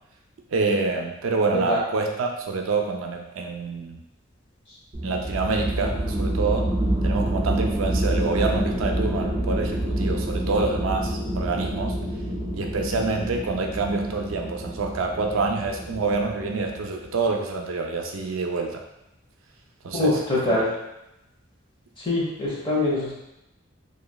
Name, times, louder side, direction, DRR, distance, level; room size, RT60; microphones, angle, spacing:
voice 1, 0.5-4.0 5.0-6.7 7.0-12.0 12.5-18.8 19.8-20.2 20.5-20.6, right 3 dB, 80° right, 2 dB, 0.4 m, -27 dB
sound 1, 4.9-17.0, right 1 dB, 35° right, 0.6 m, -27 dB
voice 2, 19.9-20.7 22.0-23.1, left 2 dB, 25° left, -6 dB, 0.9 m, -23 dB
3.0 x 2.4 x 2.2 m, 0.89 s
head